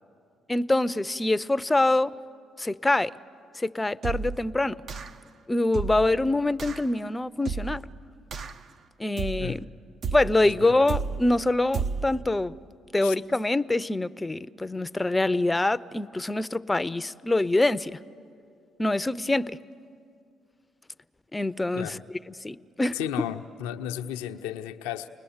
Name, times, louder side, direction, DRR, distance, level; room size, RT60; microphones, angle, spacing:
voice 1, 0.5-2.1 2.6-3.1 3.5-4.8 5.5-7.8 9.0-9.6 10.1-12.5 12.9-18.0 18.8-19.6 21.3-22.0 22.3-23.0, left 2 dB, 20° left, 0.5 m, -25 dB
sound 1, 4.0-4.5 4.9-5.3 5.7-6.2 6.6-6.9 7.5-7.9 8.3-8.7 9.2-9.6 10.0-10.4 10.9-11.3 11.7-12.2, right 5 dB, 60° right, 0.8 m, -32 dB
voice 2, 10.4-10.8 13.0-13.1 21.8-22.0 22.9-25.1, left 10 dB, 90° left, 0.6 m, -34 dB
29.5 x 20.5 x 7.2 m
supercardioid pair, 55°, 0 cm